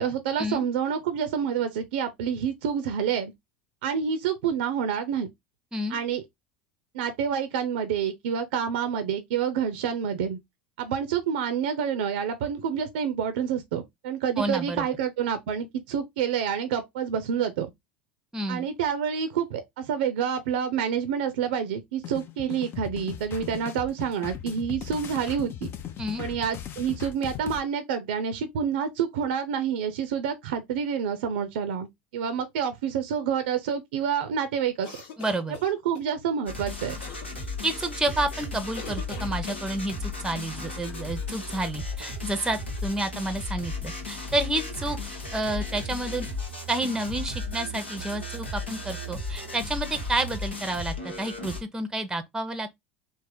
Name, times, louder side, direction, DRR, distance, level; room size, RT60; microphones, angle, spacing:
voice 1, 0.0-3.3 3.8-5.3 5.9-6.2 6.9-10.4 10.8-17.7 18.5-25.7 26.2-31.9 32.1-34.9 35.6-37.0, right 7 dB, 65° right, 0.5 m, -28 dB
voice 2, 14.4-14.9 18.3-18.7 26.0-26.2 35.2-35.6 37.6-45.0 45.3-46.3 46.7-52.8, right 1 dB, 10° right, 0.6 m, -30 dB
sound 1, 22.0-27.6, left 10 dB, 40° left, 0.5 m, -38 dB
sound 2, 34.8-36.1 37.0-37.5 38.8-40.1, left 5 dB, 65° left, 1.0 m, -42 dB
sound 3, 36.5-51.6, left 2 dB, 90° left, 0.9 m, -35 dB
3.4 x 2.1 x 3.5 m
figure-of-eight pair, 75°, 6 cm